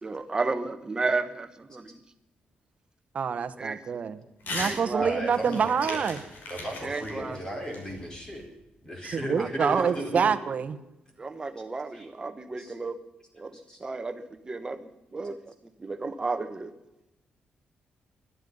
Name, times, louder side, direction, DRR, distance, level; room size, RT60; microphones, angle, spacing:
voice 1, 0.0-2.0 3.6-4.0 4.5-5.1 6.8-7.6 9.4-9.9 11.2-13.0 13.3-16.7, right 3 dB, 25° right, 10 dB, 1.3 m, -33 dB
voice 2, 3.1-4.2 4.5-6.2 9.0-10.8, right 6 dB, 50° right, 11 dB, 1.2 m, -26 dB
Crumpling crinkling / Tearing, 4.4-4.8 5.1-8.4, left 2 dB, 75° left, 5.6 m, -38 dB
voice 3, 5.0-6.0 6.5-8.4 8.8-10.3 11.9-12.1 12.6-12.7 13.5-13.8, equal, 20° left, 2 dB, 4.4 m, -35 dB
21.0 x 12.5 x 5.5 m, 0.96 s
cardioid pair, 130°, 3 cm